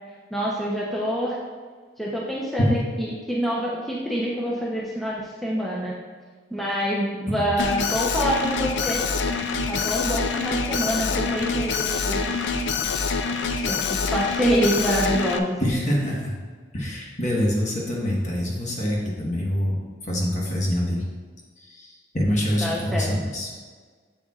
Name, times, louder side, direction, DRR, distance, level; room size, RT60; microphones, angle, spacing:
voice 1, 0.3-1.4 2.0-5.9 6.5-9.0 9.7-12.6 13.7-15.6 22.6-23.1, equal, ahead, -6 dB, 0.7 m, -26 dB
Alarm, 7.6-15.4, left 5 dB, 75° left, 0.4 m, -26 dB
voice 2, 15.6-16.3 16.7-19.7 20.0-21.1 21.6-23.5, equal, 40° left, -3 dB, 1.4 m, -25 dB
7.5 x 6.9 x 2.4 m, 1.5 s
head